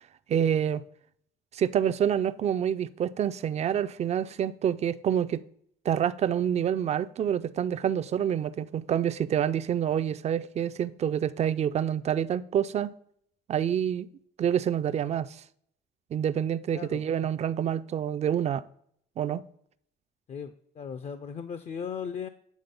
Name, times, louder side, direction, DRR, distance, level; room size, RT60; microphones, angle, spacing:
voice 1, 0.3-0.8 1.5-5.4 5.9-12.9 13.5-14.1 14.4-15.4 16.1-18.6 19.2-19.4, right 9 dB, 40° right, 15 dB, 0.4 m, -27 dB
voice 2, 16.7-17.1 20.3-22.3, left 7 dB, 40° left, 11 dB, 0.5 m, -37 dB
8.4 x 3.7 x 5.2 m, 0.66 s
cardioid pair, 110°, 17 cm